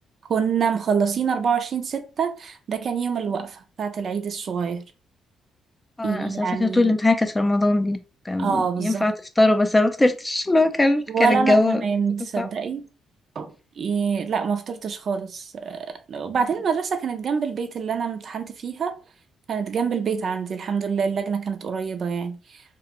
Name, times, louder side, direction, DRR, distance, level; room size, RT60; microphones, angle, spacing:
voice 1, 0.3-4.8 6.0-6.9 8.4-9.1 11.1-12.9 13.4-18.9 19.5-22.6, right 6 dB, 55° right, 0.4 m, -26 dB
voice 2, 6.0-8.0 8.3-11.8 12.4-12.5, left 2 dB, 15° left, 0.3 m, -21 dB
2.4 x 2.1 x 2.9 m
cardioid pair, 90°, 0 cm